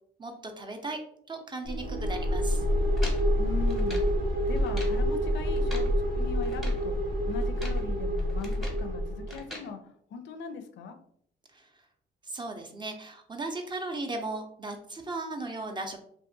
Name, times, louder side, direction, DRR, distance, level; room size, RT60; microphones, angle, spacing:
voice 1, 0.2-2.6 11.5-11.8 12.2-16.0, right 2 dB, 25° right, 4 dB, 0.4 m, -37 dB
sound 1, 1.6-9.4, equal, 80° right, 0.8 m, -27 dB
sound 2, 3.0-4.1 4.6-5.0 5.5-5.9 6.4-6.9 7.4-7.9 8.2-8.9 9.3-9.7, equal, ahead, 0.8 m, -43 dB
voice 2, 3.4-4.0 4.5-11.0, left 5 dB, 65° left, 7 dB, 0.4 m, -40 dB
2.6 x 2.4 x 2.5 m, 0.67 s
cardioid pair, 90°, 20 cm